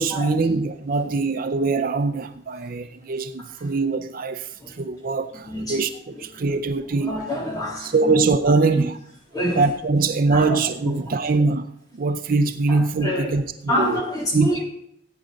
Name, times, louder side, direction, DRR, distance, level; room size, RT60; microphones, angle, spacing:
voice 1, 0.0-7.2 7.8-9.0 9.6-11.7 11.9-14.0 14.3-14.5, right 3 dB, 50° right, 0.5 m, -22 dB
voice 2, 5.5-5.8 7.0-8.1 8.6-8.7 9.3-9.6 10.3-10.6 10.8-10.9 12.7-13.4 13.7-14.6, equal, 20° left, 3.5 m, -27 dB
15.5 x 8.7 x 3.9 m
head